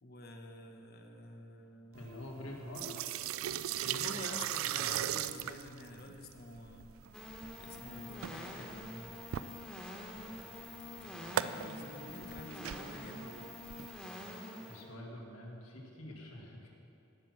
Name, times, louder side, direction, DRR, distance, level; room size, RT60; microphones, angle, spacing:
voice 1, 0.0-2.1 3.8-6.9 7.6-9.1 11.0-13.4, left 2 dB, 50° left, 4 dB, 1.0 m, -48 dB
voice 2, 1.9-3.1 14.7-16.7, left 1 dB, 75° left, -1 dB, 2.0 m, -46 dB
sound 1, 2.0-14.4, right 11 dB, 80° right, 0.3 m, -39 dB
sound 2, 7.1-14.8, left 1 dB, 5° left, 1.3 m, -46 dB
16.0 x 5.9 x 6.0 m, 2.8 s
head